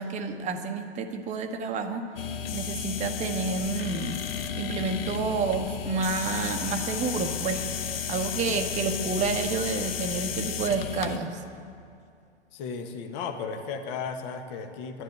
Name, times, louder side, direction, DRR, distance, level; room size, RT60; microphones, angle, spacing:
voice 1, 0.0-2.0 2.5-4.2 4.5-7.6 8.1-11.4, right 4 dB, 20° right, 5 dB, 1.1 m, -29 dB
sound 1, 2.2-11.2, left 8 dB, 55° left, 1.1 m, -33 dB
voice 2, 12.5-15.0, left 5 dB, 35° left, 6 dB, 1.5 m, -35 dB
11.5 x 10.5 x 9.5 m, 2.3 s
figure-of-eight pair, 115°, 35 cm